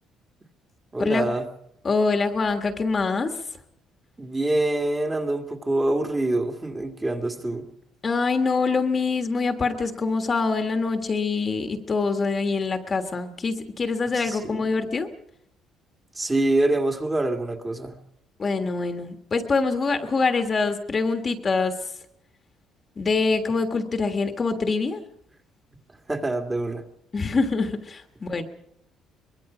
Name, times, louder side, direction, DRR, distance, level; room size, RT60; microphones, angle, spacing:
voice 1, 0.9-1.5 4.2-7.6 14.1-14.6 16.2-18.0 26.1-26.8, right 2 dB, 15° right, 4 dB, 2.0 m, -25 dB
voice 2, 1.8-3.3 8.0-15.1 18.4-21.8 23.0-25.0 27.1-28.4, left 4 dB, 30° left, 6 dB, 1.6 m, -24 dB
24.0 x 21.5 x 5.1 m, 0.75 s
cardioid pair, 140°, 0 cm